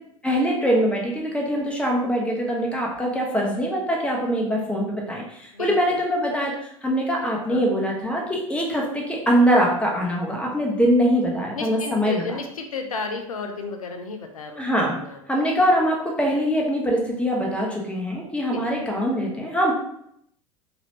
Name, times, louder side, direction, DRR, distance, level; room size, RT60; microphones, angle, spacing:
voice 1, 0.2-12.2 14.6-15.0 15.3-19.7, equal, 5° left, -2 dB, 0.9 m, -23 dB
voice 2, 5.5-6.0 7.5-7.6 11.5-14.6 14.9-15.2 18.5-18.6, left 3 dB, 85° left, 4 dB, 0.4 m, -33 dB
3.0 x 2.9 x 2.9 m, 0.74 s
figure-of-eight pair, 75°, 18 cm